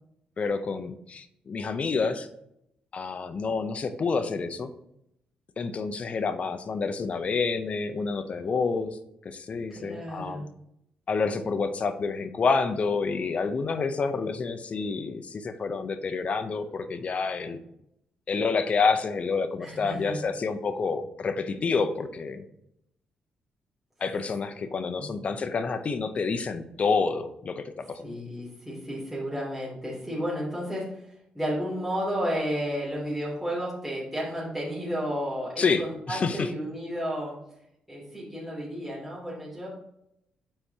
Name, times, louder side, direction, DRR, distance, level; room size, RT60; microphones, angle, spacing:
voice 1, 0.4-2.3 2.9-4.7 5.6-10.4 11.1-17.6 18.3-22.4 24.0-28.0 35.6-36.5, left 4 dB, 45° left, 10 dB, 0.6 m, -28 dB
voice 2, 9.7-10.5 19.6-20.2 25.0-25.2 28.0-37.4 37.9-39.7, equal, 5° right, -7 dB, 2.6 m, -32 dB
8.7 x 4.6 x 2.8 m, 0.78 s
cardioid pair, 70°, 3 cm